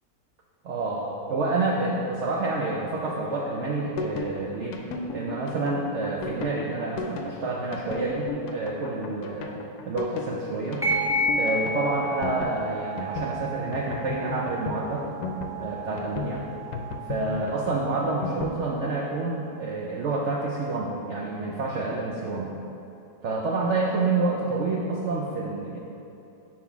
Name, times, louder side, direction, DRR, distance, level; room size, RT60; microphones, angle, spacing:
voice 1, 0.6-4.8 5.1-10.8 11.4-15.1 15.6-16.5 17.1-22.5 23.2-25.8, right 3 dB, 85° right, -2 dB, 0.6 m, -28 dB
sound 1, 3.5-18.6, left 4 dB, 75° left, 1.0 m, -35 dB
sound 2, 10.8-19.8, right 1 dB, 5° right, 0.4 m, -33 dB
5.6 x 4.6 x 4.7 m, 2.8 s
omnidirectional pair, 1.9 m